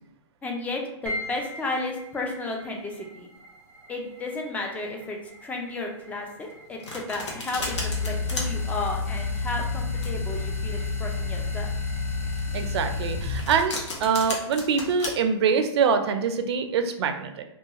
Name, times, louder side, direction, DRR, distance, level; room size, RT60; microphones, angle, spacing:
voice 1, 0.4-3.3 3.9-11.7, left 2 dB, 10° left, 0 dB, 0.4 m, -33 dB
sound 1, 1.0-15.5, left 1 dB, 10° right, 0.9 m, -45 dB
Domestic sounds home sounds, 6.4-15.1, left 2 dB, 75° left, 0.8 m, -36 dB
sound 2, 7.6-13.6, left 4 dB, 50° left, 0.9 m, -29 dB
voice 2, 12.5-17.4, right 6 dB, 60° right, 7 dB, 0.4 m, -24 dB
2.3 x 2.3 x 2.8 m, 0.79 s
hypercardioid pair, 125°, 15 cm